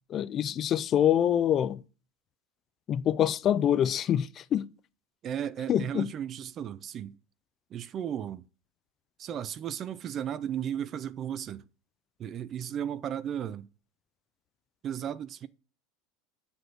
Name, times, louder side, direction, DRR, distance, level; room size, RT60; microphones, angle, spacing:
voice 1, 0.1-1.8 2.9-4.7 5.7-6.1, left 10 dB, 30° left, 0.4 m, -25 dB
voice 2, 5.2-7.2 7.7-8.4 9.2-11.6 12.2-13.7 14.8-15.5, right 9 dB, 30° right, 0.5 m, -35 dB
8.2 x 5.2 x 6.1 m
supercardioid pair, 160°, 0 cm